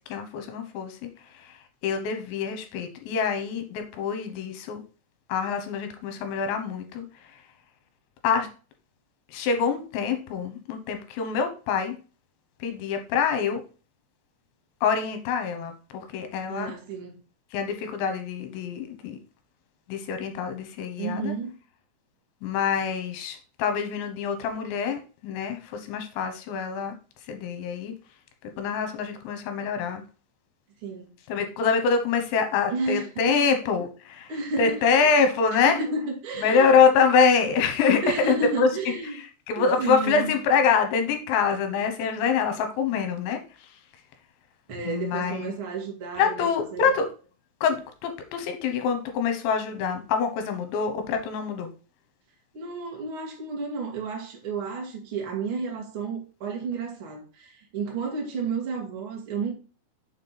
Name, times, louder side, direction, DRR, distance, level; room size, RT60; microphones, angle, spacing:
voice 1, 0.1-4.8 5.3-7.4 8.2-8.5 9.3-12.0 12.6-13.6 14.8-16.7 17.5-19.2 19.9-21.3 22.4-27.0 27.3-27.9 28.6-30.0 31.3-34.3 34.6-35.8 36.4-38.7 39.1-43.8 44.8-45.5 46.2-47.1 47.6-51.7, left 6 dB, 75° left, 3.2 m, -25 dB
voice 2, 16.5-17.2 21.0-21.5 30.8-31.0 32.7-33.4 34.3-35.1 35.5-36.7 38.0-39.2 39.5-40.4 44.7-46.9 52.5-59.5, right 4 dB, 60° right, 1.4 m, -32 dB
7.1 x 4.4 x 4.0 m
omnidirectional pair, 5.6 m